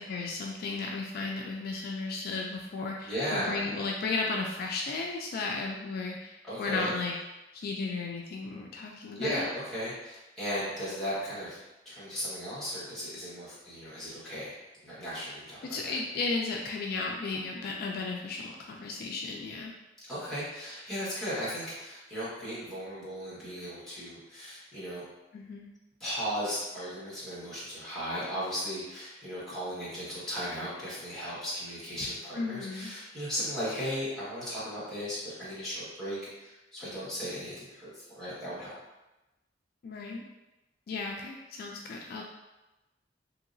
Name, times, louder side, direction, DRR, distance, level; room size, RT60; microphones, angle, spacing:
voice 1, 0.1-7.1 7.5-9.5 15.6-19.7 25.3-25.7 32.3-33.0 39.8-40.2 40.9-42.2, left 3 dB, 55° left, 0 dB, 0.3 m, -34 dB
voice 2, 3.0-3.6 6.4-6.9 9.1-11.6 11.8-14.5 14.8-15.9 20.1-25.0 26.0-38.7, equal, 5° left, -10 dB, 1.3 m, -36 dB
3.0 x 2.8 x 2.5 m, 1.0 s
head